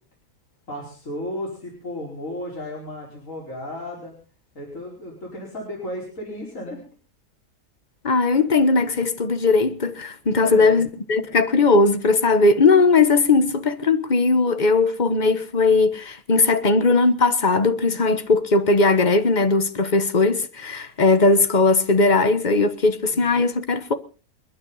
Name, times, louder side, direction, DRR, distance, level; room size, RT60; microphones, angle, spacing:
voice 1, 0.7-4.1 4.5-6.8 10.3-10.8 23.1-23.4, left 1 dB, 55° left, 5.4 m, -34 dB
voice 2, 8.0-23.9, left 3 dB, 30° left, 1.4 m, -18 dB
29.0 x 9.9 x 4.1 m
omnidirectional pair, 1.6 m